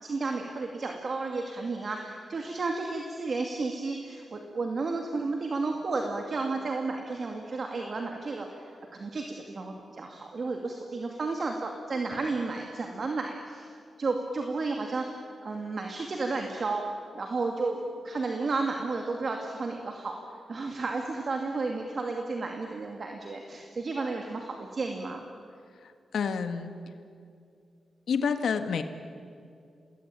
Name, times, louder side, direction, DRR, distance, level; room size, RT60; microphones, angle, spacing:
voice 1, 0.0-15.1 15.4-25.2, right 3 dB, 50° right, 2 dB, 2.4 m, -32 dB
voice 2, 26.1-26.7 28.1-28.8, left 6 dB, 85° left, 8 dB, 1.6 m, -28 dB
28.0 x 20.0 x 9.0 m, 2.4 s
wide cardioid pair, 105°, 0 cm